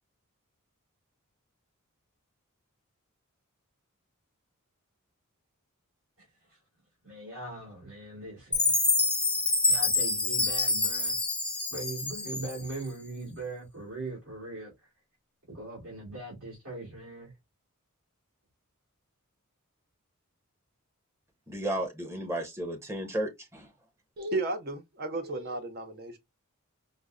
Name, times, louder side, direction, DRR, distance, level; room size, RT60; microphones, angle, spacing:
voice 1, 6.2-6.6 7.0-8.8 9.7-11.2 11.7-14.7 15.5-17.3, right 2 dB, 65° right, 1.7 m, -40 dB
Chime, 8.5-12.8, left 3 dB, 5° left, 0.5 m, -27 dB
voice 2, 21.5-23.7, right 1 dB, 10° right, 0.8 m, -33 dB
voice 3, 24.2-26.2, right 2 dB, 45° right, 0.6 m, -33 dB
5.0 x 2.1 x 2.3 m
head